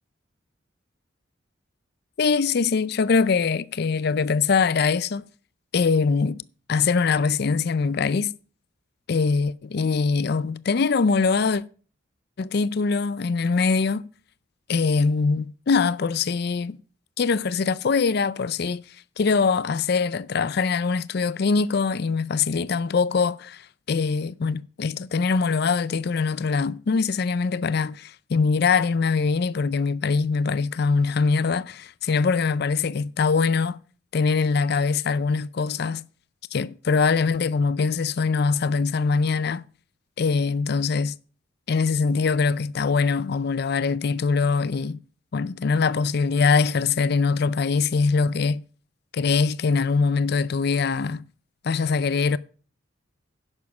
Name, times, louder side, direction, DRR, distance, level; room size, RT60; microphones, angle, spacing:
voice 1, 2.2-5.2 5.7-6.4 6.7-8.3 9.1-11.6 12.4-14.0 14.7-16.8 17.2-18.8 19.2-33.8 34.1-36.0 36.5-39.6 40.2-41.1 41.7-45.0 45.3-48.6 49.1-51.2 51.6-52.4, left 5 dB, 50° left, 0.4 m, -23 dB
10.5 x 7.2 x 6.0 m
head